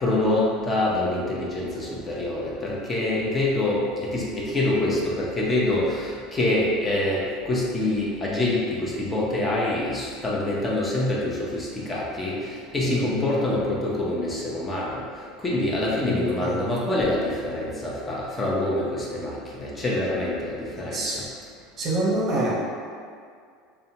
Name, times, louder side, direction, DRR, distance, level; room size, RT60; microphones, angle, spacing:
voice 1, 0.0-15.0 15.4-21.2, left 1 dB, 25° left, -5 dB, 0.5 m, -26 dB
voice 2, 12.9-13.3 16.0-16.6 20.9-21.2 21.8-22.5, right 1 dB, 40° right, -4 dB, 0.6 m, -26 dB
2.6 x 2.1 x 2.7 m, 2.2 s
supercardioid pair, 95°, 0 cm